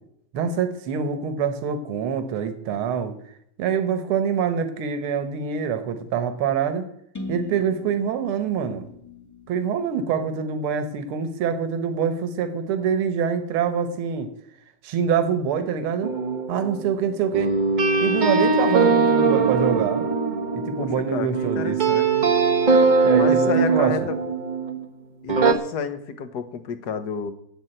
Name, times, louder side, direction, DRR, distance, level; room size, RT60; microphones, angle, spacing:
voice 1, 0.3-3.1 3.6-6.9 7.3-8.9 9.5-14.3 14.8-16.1 16.5-17.5 18.0-20.0 20.6-21.8 23.0-23.9, right 7 dB, 75° right, 8 dB, 1.9 m, -25 dB
sound 1, 7.1-11.0, left 2 dB, 10° left, 1.2 m, -41 dB
sound 2, 16.0-24.8 25.3-25.5, right 4 dB, 50° right, 0.5 m, -21 dB
voice 2, 20.8-22.3 23.2-24.2 25.2-27.3, left 6 dB, 55° left, 11 dB, 1.4 m, -30 dB
11.0 x 7.9 x 8.8 m, 0.72 s
omnidirectional pair, 2.4 m